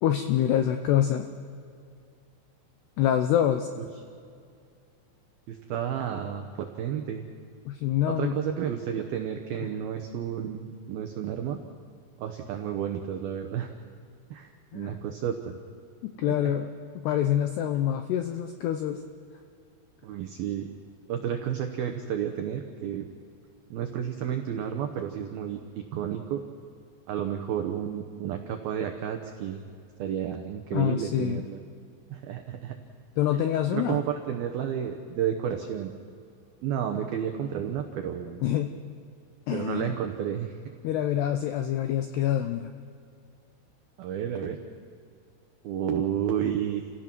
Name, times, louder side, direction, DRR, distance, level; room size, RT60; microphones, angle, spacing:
voice 1, 0.0-1.3 3.0-3.7 7.7-8.4 14.7-15.0 16.0-16.7 17.0-19.0 30.7-31.4 33.2-34.0 38.4-38.7 39.5-39.9 40.8-42.7, left 11 dB, 85° left, 7 dB, 2.3 m, -26 dB
voice 2, 5.5-7.2 8.1-11.6 12.2-13.7 14.3-15.6 16.3-16.5 20.0-20.7 21.1-23.1 23.7-26.4 27.1-29.7 30.0-31.6 32.1-32.8 33.7-35.9 36.6-38.4 39.5-40.6 44.0-44.6 45.6-46.9, right 9 dB, 85° right, 5 dB, 2.1 m, -31 dB
29.5 x 16.5 x 6.1 m, 2.4 s
omnidirectional pair, 5.8 m